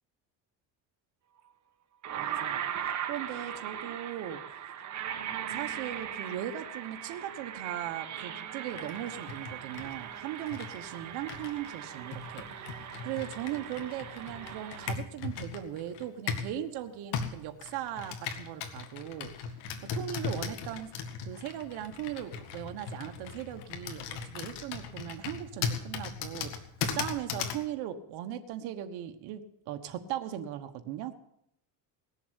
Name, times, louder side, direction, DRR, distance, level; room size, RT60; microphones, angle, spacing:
sound 1, 1.4-1.5 2.0-15.0, right 9 dB, 45° right, 1.6 m, -39 dB
voice 1, 2.2-4.7 5.5-19.6 19.8-20.9 21.2-26.5 26.8-29.4 29.7-31.1, right 11 dB, 80° right, 6 dB, 1.3 m, -39 dB
Computer keyboard, 8.7-16.6 17.1-27.6, left 6 dB, 85° left, 1.9 m, -38 dB
19.0 x 7.2 x 8.1 m, 0.78 s
cardioid pair, 120°, 38 cm